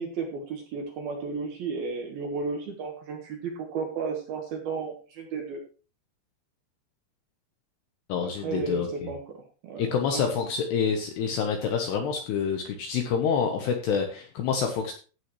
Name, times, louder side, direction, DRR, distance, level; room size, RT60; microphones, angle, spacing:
voice 1, 0.0-5.6 8.2-10.3, right 4 dB, 65° right, 2 dB, 2.7 m, -34 dB
voice 2, 8.1-9.1 9.8-14.9, left 6 dB, 75° left, 4 dB, 2.6 m, -27 dB
15.5 x 8.4 x 3.2 m, 0.36 s
omnidirectional pair, 6.0 m